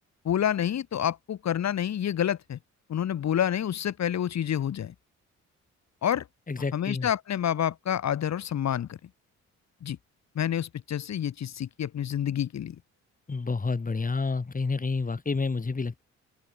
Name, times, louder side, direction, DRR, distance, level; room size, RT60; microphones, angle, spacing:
voice 1, 0.2-2.6 2.9-4.9 6.0-6.3 6.7-9.0 9.8-10.0 10.4-12.8, left 10 dB, 60° left, 4.1 m, -28 dB
voice 2, 6.5-7.1 13.3-16.0, left 4 dB, 25° left, 7.2 m, -29 dB
open air
cardioid pair, 90°, 30 cm